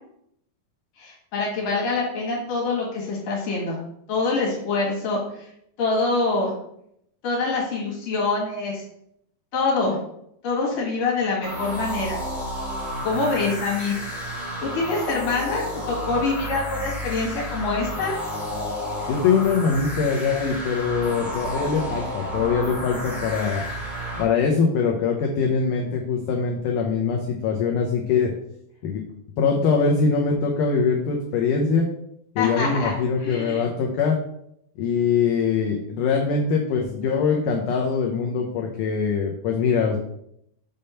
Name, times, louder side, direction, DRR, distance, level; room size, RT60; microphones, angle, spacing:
voice 1, 1.0-3.8 4.1-5.5 5.8-6.5 7.2-8.8 9.5-10.0 10.4-12.2 13.0-13.9 14.6-18.2 32.4-32.9 33.2-33.6, left 3 dB, 60° left, -3 dB, 2.9 m, -25 dB
sound 1, 11.4-24.2, equal, ahead, 0.5 m, -31 dB
voice 2, 19.1-23.6 24.2-28.3 28.8-29.0 29.4-31.9 32.4-34.2 34.8-40.0, left 5 dB, 80° left, 0 dB, 1.8 m, -22 dB
6.6 x 3.5 x 5.5 m, 0.75 s
omnidirectional pair, 4.5 m